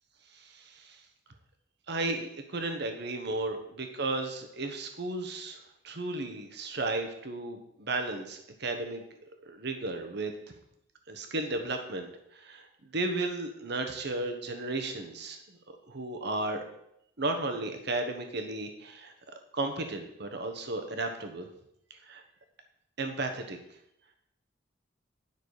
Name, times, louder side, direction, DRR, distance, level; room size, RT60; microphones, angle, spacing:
voice 1, 0.3-1.0 1.9-5.6 5.8-9.0 9.4-10.3 11.1-12.7 12.9-16.6 17.2-19.1 19.5-21.5 22.1-22.2 23.0-23.6, right 2 dB, 60° right, 5 dB, 1.2 m, -34 dB
9.7 x 6.1 x 4.9 m, 0.76 s
head